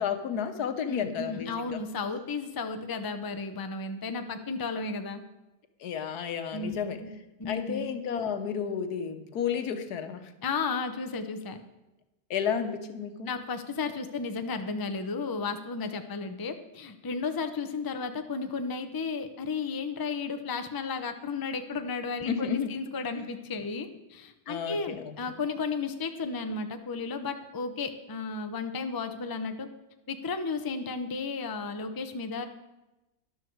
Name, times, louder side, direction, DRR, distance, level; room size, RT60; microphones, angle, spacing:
voice 1, 0.0-1.8 5.8-7.0 7.5-10.3 12.3-13.3 22.2-22.7 24.5-25.2, left 7 dB, 90° left, 9 dB, 1.5 m, -32 dB
voice 2, 0.9-5.2 6.5-6.8 7.0-7.1 7.4-7.9 10.4-11.6 13.3-29.7 30.1-32.4, left 4 dB, 25° left, 7 dB, 0.5 m, -33 dB
13.0 x 11.5 x 4.6 m, 1.0 s
omnidirectional pair, 1.6 m